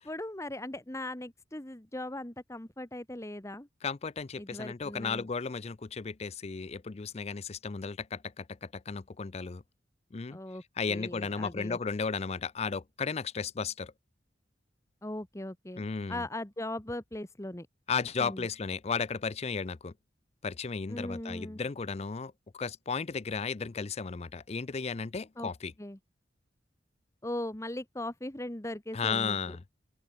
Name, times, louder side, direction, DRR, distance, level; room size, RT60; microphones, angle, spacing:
voice 1, 0.0-3.7 4.4-5.3 10.3-10.6 10.9-11.8 15.0-17.7 18.2-18.5 20.9-21.6 25.4-25.5 25.8-26.0 27.2-29.6, left 1 dB, 15° left, 1.3 m, -39 dB
voice 2, 3.8-9.6 10.1-10.4 10.8-13.9 15.8-16.2 17.9-19.9 20.4-25.7 28.9-29.6, left 5 dB, 35° left, 0.5 m, -34 dB
open air
head